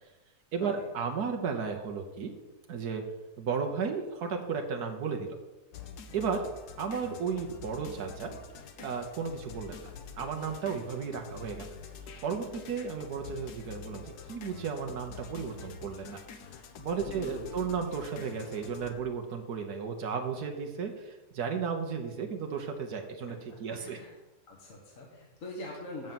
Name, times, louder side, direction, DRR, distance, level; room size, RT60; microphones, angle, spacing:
voice 1, 0.5-2.4 2.7-3.0 3.4-5.3 6.1-6.4 6.8-8.3 8.8-9.8 10.2-11.7 12.2-16.2 16.8-24.0, right 6 dB, 85° right, 3 dB, 1.5 m, -34 dB
sound 1, 5.7-18.9, left 6 dB, 90° left, 1.4 m, -47 dB
voice 2, 17.1-17.9 23.7-24.1 24.5-26.1, left 1 dB, 55° left, -1 dB, 1.8 m, -43 dB
9.1 x 5.5 x 7.6 m, 1.1 s
omnidirectional pair, 1.6 m